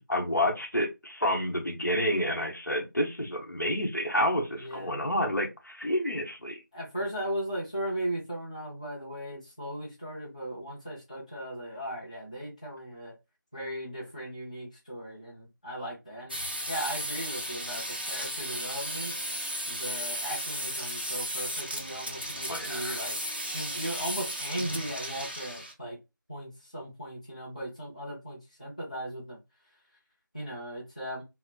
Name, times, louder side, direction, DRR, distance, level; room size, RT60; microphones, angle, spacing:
voice 1, 0.0-6.6 22.5-23.0, equal, 65° left, 0.8 m, -29 dB
voice 2, 4.6-4.9 6.7-13.1 13.5-16.4 16.7-19.1 19.7-23.2 23.5-26.0 26.3-29.4 30.3-31.2, right 1 dB, 20° left, 0.7 m, -37 dB
sound 1, 16.3-25.7, equal, 30° right, 0.4 m, -35 dB
3.1 x 2.0 x 2.3 m
figure-of-eight pair, 170°, 11 cm